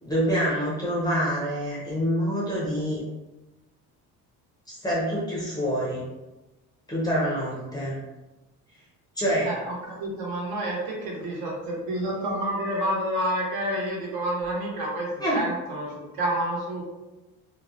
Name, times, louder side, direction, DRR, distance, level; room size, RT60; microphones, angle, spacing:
voice 1, 0.0-3.0 4.7-6.0 6.9-8.0 9.2-9.5 15.2-15.4, equal, 10° left, -6 dB, 0.4 m, -26 dB
voice 2, 9.4-16.8, right 1 dB, 65° right, -2 dB, 0.9 m, -29 dB
2.3 x 2.0 x 2.6 m, 1.0 s
cardioid pair, 170°, 38 cm